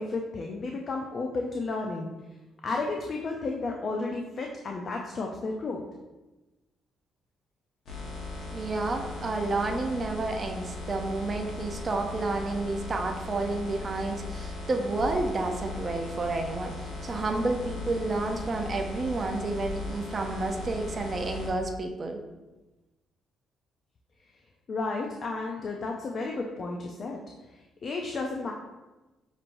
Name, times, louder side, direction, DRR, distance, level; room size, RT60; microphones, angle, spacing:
voice 1, 0.0-2.1 2.6-5.8 24.7-27.2 27.5-28.5, left 3 dB, 50° left, 1 dB, 0.4 m, -32 dB
sound 1, 7.9-21.5, left 2 dB, 65° left, 1.1 m, -38 dB
voice 2, 8.5-22.2, right 2 dB, 35° right, 3 dB, 0.5 m, -30 dB
5.8 x 3.0 x 2.6 m, 1.1 s
cardioid pair, 90°, 0 cm